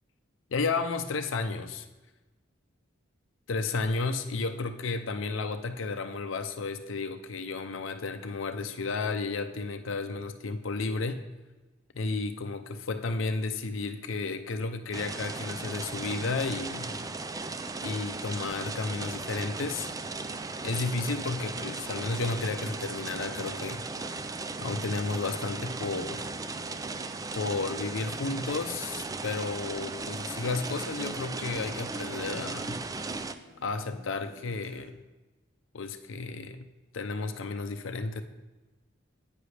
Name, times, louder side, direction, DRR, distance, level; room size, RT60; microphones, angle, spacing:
voice 1, 0.5-1.9 3.5-11.2 11.9-17.0 17.8-19.9 20.6-23.8 24.6-26.3 27.3-32.8 33.6-34.9 35.7-36.7 36.9-38.2, left 3 dB, 70° left, 9 dB, 0.6 m, -32 dB
sound 1, 14.9-33.3, right 3 dB, 20° right, 0.3 m, -37 dB
Acoustic guitar, 18.9-34.9, right 1 dB, 85° right, 1.0 m, -54 dB
10.0 x 8.7 x 3.3 m, 1.1 s
head